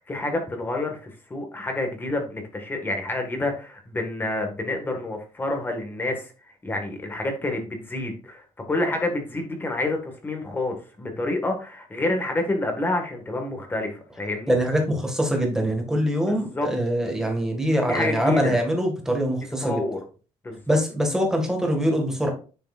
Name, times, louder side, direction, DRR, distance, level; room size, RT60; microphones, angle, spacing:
voice 1, 0.0-6.3 6.6-8.4 8.7-14.6 16.3-16.7 17.9-18.6 19.6-20.0 20.4-20.8, left 2 dB, 15° left, 4 dB, 1.8 m, -28 dB
voice 2, 14.5-19.8 20.7-22.3, equal, 5° right, 1 dB, 1.9 m, -23 dB
9.7 x 6.7 x 2.5 m, 0.36 s
cardioid pair, 165°, 12 cm